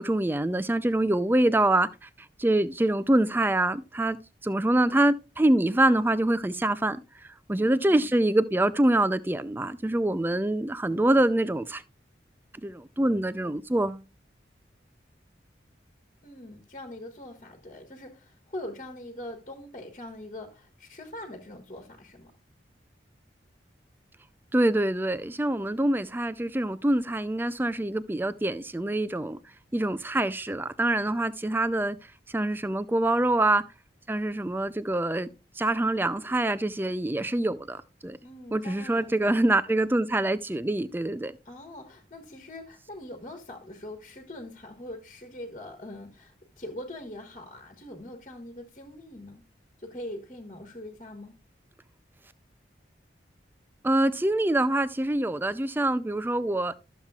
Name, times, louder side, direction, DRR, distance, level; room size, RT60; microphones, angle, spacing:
voice 1, 0.0-2.1 2.4-4.2 4.4-7.0 7.5-11.8 12.6-14.0 24.5-29.4 29.7-32.0 32.3-33.6 34.1-35.3 35.6-38.2 38.5-41.3 53.8-56.7, right 1 dB, 10° right, 0.4 m, -25 dB
voice 2, 7.5-8.1 16.2-22.3 38.2-39.4 41.4-49.4 49.8-51.4, left 1 dB, 40° left, 1.4 m, -42 dB
13.0 x 7.3 x 2.4 m
head